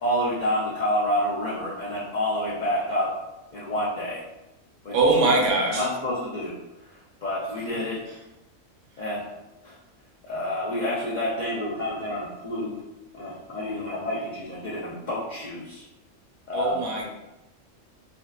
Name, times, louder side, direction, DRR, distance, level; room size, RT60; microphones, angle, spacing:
voice 1, 0.0-3.2 3.5-4.2 4.8-5.0 5.7-6.6 6.9-8.0 9.0-9.3 9.6-9.7 10.2-12.8 13.1-15.8 16.5-16.8, left 1 dB, 80° left, -6 dB, 0.4 m, -28 dB
voice 2, 4.9-5.9 16.5-17.1, right 2 dB, 75° right, 0 dB, 0.9 m, -22 dB
2.5 x 2.2 x 2.3 m, 0.97 s
omnidirectional pair, 1.3 m